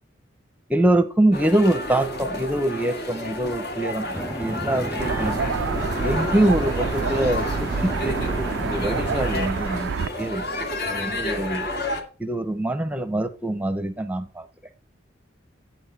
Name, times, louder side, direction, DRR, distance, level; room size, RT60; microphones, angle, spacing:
voice 1, 0.7-5.5 6.0-9.9 10.2-10.5 10.8-11.7 12.2-14.5, right 1 dB, 5° right, 9 dB, 0.9 m, -24 dB
sound 1, 1.3-12.0, left 1 dB, 50° left, 2.3 m, -31 dB
sound 2, 4.1-9.5, equal, 20° left, 1.8 m, -32 dB
sound 3, 5.0-10.1, right 5 dB, 70° right, 0.4 m, -28 dB
11.5 x 9.0 x 4.2 m, 0.34 s
head